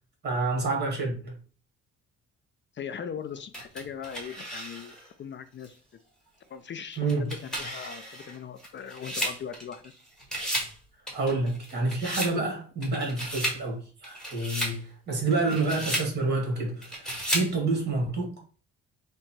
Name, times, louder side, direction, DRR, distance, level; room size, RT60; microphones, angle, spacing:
voice 1, 0.2-1.3 7.0-7.3 11.1-18.3, right 3 dB, 35° right, 1.7 m, -28 dB
voice 2, 2.7-5.8 6.5-9.9 15.5-15.6, left 7 dB, 40° left, 0.4 m, -39 dB
sound 1, 3.5-5.1 5.6-5.7 6.9-9.9 10.2-10.8 11.1-12.4 12.8-13.6 14.0-14.8 15.3-16.1 16.8-17.5, equal, ahead, 1.6 m, -33 dB
3.7 x 2.2 x 4.5 m
cardioid pair, 90°, 30 cm